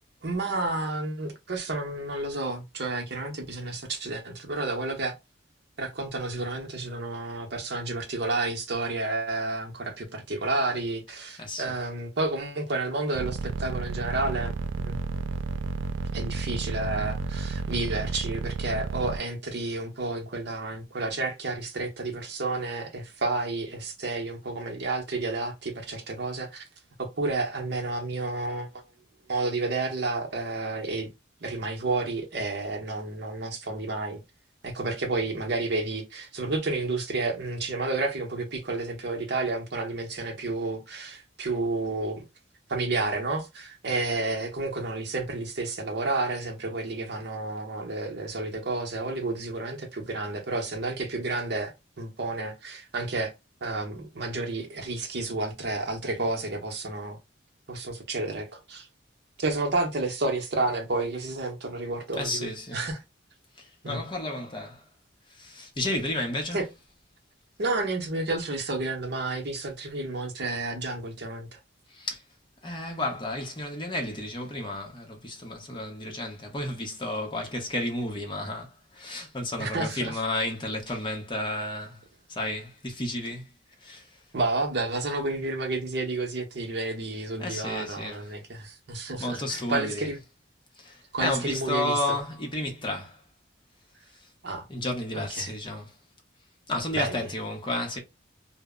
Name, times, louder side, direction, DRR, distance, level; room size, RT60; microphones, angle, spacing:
voice 1, 0.2-5.1 5.8-15.1 16.1-26.6 27.0-28.7 29.3-31.1 31.4-34.2 34.6-42.2 42.7-53.3 53.6-57.2 57.7-58.9 59.4-63.0 63.8-64.0 66.5-66.7 67.6-71.6 79.6-80.1 84.3-90.2 91.1-92.0 94.4-94.7 95.1-95.5 96.9-97.2, right 2 dB, 60° right, 0.7 m, -31 dB
voice 2, 11.1-11.7 62.1-62.9 63.6-64.8 65.3-66.7 71.9-72.2 72.6-82.0 82.3-83.4 83.8-84.1 87.4-88.3 89.2-90.1 90.8-93.2 94.7-95.9 96.7-98.0, left 1 dB, 25° left, 0.6 m, -32 dB
sound 1, 13.1-19.2, right 5 dB, 85° right, 0.3 m, -31 dB
2.0 x 2.0 x 3.5 m
head